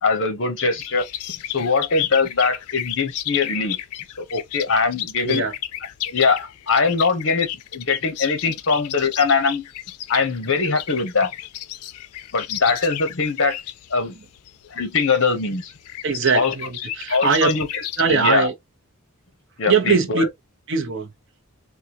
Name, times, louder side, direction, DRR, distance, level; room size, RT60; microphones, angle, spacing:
voice 1, 0.0-1.1 1.5-3.8 4.2-5.4 6.1-9.7 10.1-11.3 12.3-13.6 13.9-14.1 14.7-15.7 16.3-16.5 17.1-18.5 19.6-20.3, left 4 dB, 55° left, 0.9 m, -22 dB
sound 1, 0.8-18.0, left 13 dB, 85° left, 0.4 m, -33 dB
voice 2, 16.0-17.5 18.0-18.5 19.7-20.2 20.7-21.1, right 5 dB, 55° right, 0.8 m, -21 dB
3.6 x 2.4 x 2.9 m
head